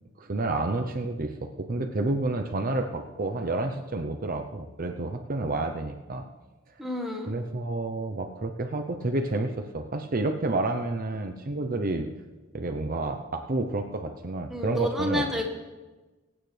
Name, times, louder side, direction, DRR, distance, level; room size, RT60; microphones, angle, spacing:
voice 1, 0.2-6.2 7.3-12.1 12.5-15.2, right 2 dB, 45° right, 5 dB, 0.7 m, -30 dB
voice 2, 6.8-7.3 14.5-15.5, left 1 dB, ahead, 0 dB, 1.4 m, -29 dB
22.0 x 9.0 x 3.3 m, 1.2 s
head